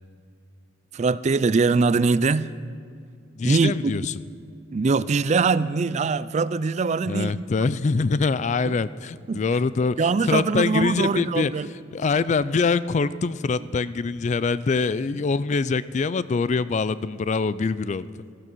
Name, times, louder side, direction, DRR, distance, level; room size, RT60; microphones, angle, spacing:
voice 1, 0.9-2.5 3.4-3.9 4.7-7.4 8.7-8.8 9.3-9.4 10.0-11.7, right 4 dB, 35° right, 0.4 m, -22 dB
voice 2, 3.4-4.2 7.1-11.5 11.9-18.1, left 4 dB, 35° left, 0.3 m, -24 dB
17.0 x 13.0 x 6.2 m
head